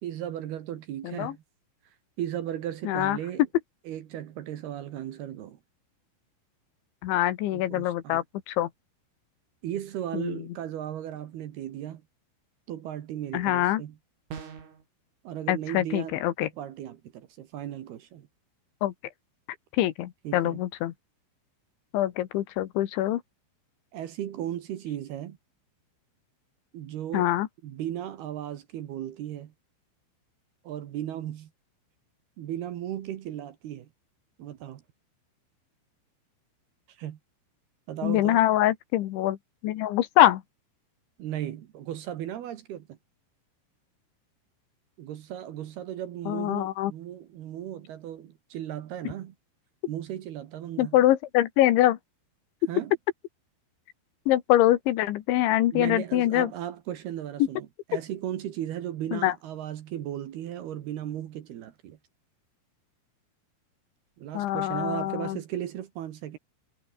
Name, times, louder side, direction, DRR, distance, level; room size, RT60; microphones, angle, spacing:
voice 1, 0.0-1.4 2.2-3.4 3.9-5.6 7.5-8.2 9.6-12.0 12.7-14.0 15.2-16.2 16.6-18.3 20.2-20.6 23.9-25.4 26.7-27.3 27.6-29.5 30.6-31.5 32.4-33.9 34.4-34.8 36.9-37.2 37.9-38.4 41.2-43.0 45.0-49.3 49.9-51.0 52.7-52.9 55.7-62.0 64.2-66.4, right 11 dB, 65° right, 3.0 m, -36 dB
voice 2, 2.9-3.2 7.0-8.7 10.1-10.4 13.3-13.8 15.5-16.5 18.8-18.9 19.8-20.9 21.9-23.2 27.1-27.5 38.0-39.4 39.6-40.4 46.3-46.9 50.8-52.0 54.3-56.5 59.1-59.3 64.4-65.4, left 14 dB, 75° left, 3.5 m, -24 dB
sound 1, 14.3-14.8, right 7 dB, 90° right, 7.4 m, -40 dB
omnidirectional pair, 5.6 m